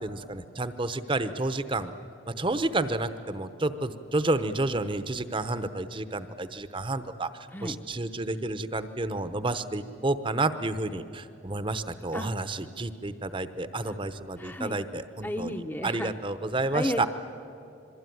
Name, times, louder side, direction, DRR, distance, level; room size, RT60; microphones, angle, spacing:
voice 1, 0.0-1.9 2.3-7.3 7.6-15.5 15.8-17.1, right 2 dB, 25° right, 12 dB, 0.8 m, -30 dB
voice 2, 7.5-7.8 12.1-12.3 13.9-14.0 14.4-14.8 15.2-16.1 16.7-17.1, left 1 dB, 10° left, 7 dB, 0.8 m, -33 dB
26.5 x 22.5 x 9.4 m, 2.8 s
head